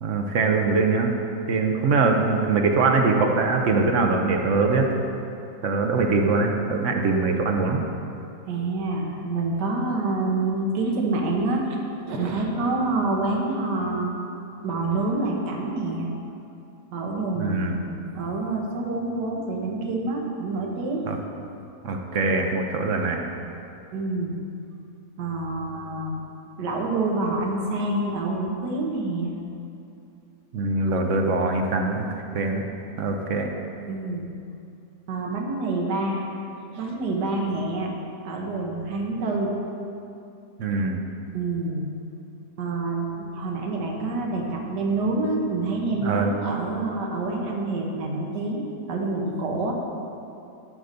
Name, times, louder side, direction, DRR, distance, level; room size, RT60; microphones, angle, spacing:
voice 1, 0.0-1.1 1.5-4.9 5.6-7.9 17.4-17.8 21.1-21.2 21.8-23.2 30.5-32.0 32.3-32.7 33.0-33.5 40.6-41.0 46.0-46.3, right 3 dB, 55° right, 2 dB, 0.9 m, -22 dB
voice 2, 8.5-11.8 12.1-14.1 14.6-16.1 16.9-21.0 23.9-24.4 25.2-26.2 26.6-29.3 33.9-34.3 35.1-36.3 36.7-37.9 38.2-39.5 41.3-41.9 42.6-49.7, right 2 dB, 70° right, 0 dB, 1.6 m, -27 dB
11.0 x 3.9 x 6.7 m, 2.6 s
omnidirectional pair, 1.9 m